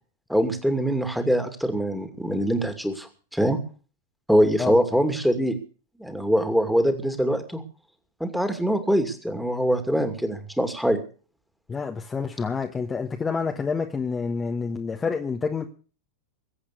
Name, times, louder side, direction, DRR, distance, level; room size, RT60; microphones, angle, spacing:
voice 1, 0.3-3.6 4.3-5.6 6.0-7.6 8.2-11.0, equal, ahead, 2.5 m, -23 dB
voice 2, 11.7-15.7, left 5 dB, 15° left, 1.4 m, -28 dB
21.0 x 8.4 x 6.7 m
figure-of-eight pair, 90°, 0 cm